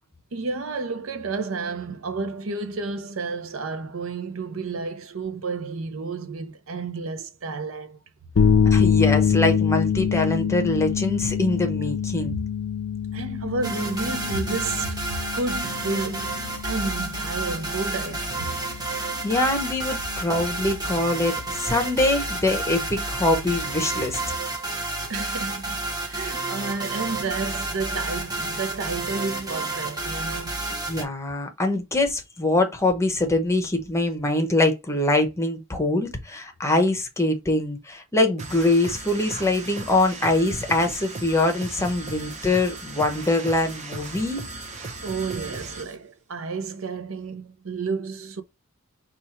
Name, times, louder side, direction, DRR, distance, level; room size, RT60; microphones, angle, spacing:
voice 1, 0.3-8.0 12.2-12.4 13.1-15.0 15.3-18.5 25.1-25.8 26.0-30.7 45.0-48.4, right 4 dB, 70° right, 0.6 m, -31 dB
sound 1, 8.4-24.3, left 7 dB, 60° left, 0.4 m, -26 dB
voice 2, 8.6-12.4 19.0-24.2 30.7-44.4, left 2 dB, 15° left, 0.9 m, -23 dB
sound 2, 13.6-31.0, right 2 dB, 20° right, 1.2 m, -30 dB
sound 3, 38.4-46.0, right 3 dB, 35° right, 0.8 m, -37 dB
4.4 x 2.5 x 4.3 m
head